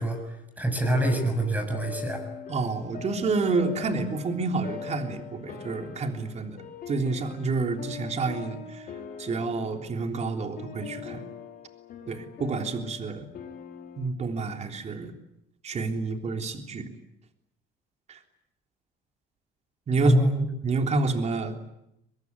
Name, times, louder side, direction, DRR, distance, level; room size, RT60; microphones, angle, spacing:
voice 1, 0.0-2.3 20.0-20.5, right 1 dB, 10° right, 6 dB, 7.0 m, -25 dB
sound 1, 0.8-14.1, left 6 dB, 55° left, 4.9 m, -42 dB
voice 2, 2.5-6.6 6.9-8.9 9.2-11.2 12.1-13.3 14.0-15.1 15.6-16.9 18.1-18.2 19.9-20.2 20.6-21.6, right 3 dB, 40° right, 5 dB, 3.5 m, -29 dB
23.5 x 22.0 x 9.7 m, 0.80 s
cardioid pair, 110°, 17 cm